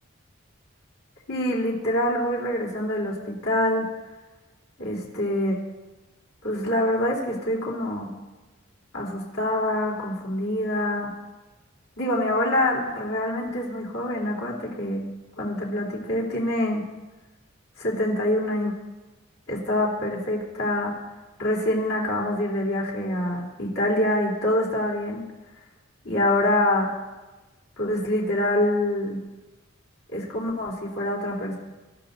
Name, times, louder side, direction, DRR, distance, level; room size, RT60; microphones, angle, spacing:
voice 1, 1.3-3.9 4.8-5.6 6.4-8.1 8.9-11.1 12.0-15.0 15.4-16.8 17.8-18.7 19.5-20.9 21.4-25.2 26.0-26.9 27.8-29.2 30.1-31.6, left 1 dB, 90° left, -4 dB, 3.9 m, -25 dB
26.0 x 12.5 x 2.8 m, 1.2 s
head